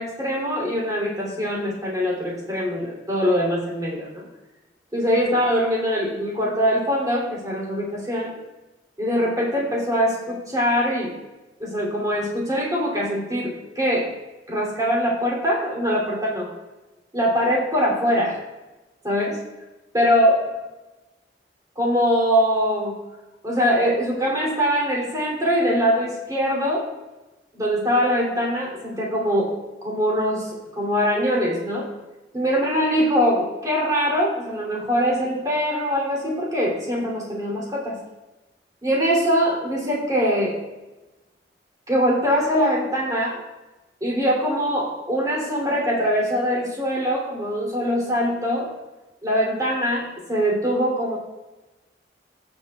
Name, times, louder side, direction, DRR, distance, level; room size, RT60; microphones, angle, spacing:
voice 1, 0.0-4.3 4.9-8.4 9.0-11.1 11.6-14.1 14.5-16.5 17.1-18.4 19.0-19.4 19.9-20.3 21.8-22.9 23.4-26.9 27.5-29.5 29.8-31.9 32.3-38.0 38.8-40.5 41.9-43.4 44.0-48.7 49.2-51.2, equal, 20° right, -4 dB, 2.8 m, -22 dB
17.0 x 6.9 x 2.3 m, 1.1 s
head